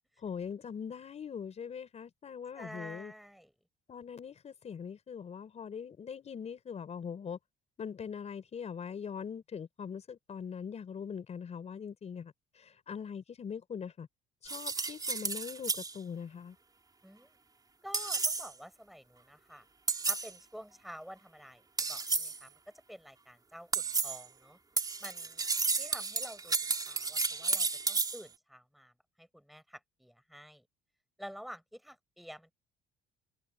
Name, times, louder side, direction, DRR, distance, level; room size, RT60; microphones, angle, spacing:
voice 1, 0.2-3.1 3.9-7.4 7.8-14.1 14.4-16.6, left 7 dB, 40° left, 4.6 m, -42 dB
voice 2, 2.6-3.5 17.0-17.4 17.8-19.6 20.0-22.6 22.9-24.6 25.0-25.5 25.8-26.6 26.9-28.9 29.2-30.6 31.2-32.5, equal, ahead, 5.4 m, -49 dB
sound 1, 14.5-15.9 17.9-18.5 19.9-20.3 21.8-22.4 23.7-24.3 24.8-28.2, right 4 dB, 20° right, 4.1 m, -32 dB
cardioid pair, 110°, 17 cm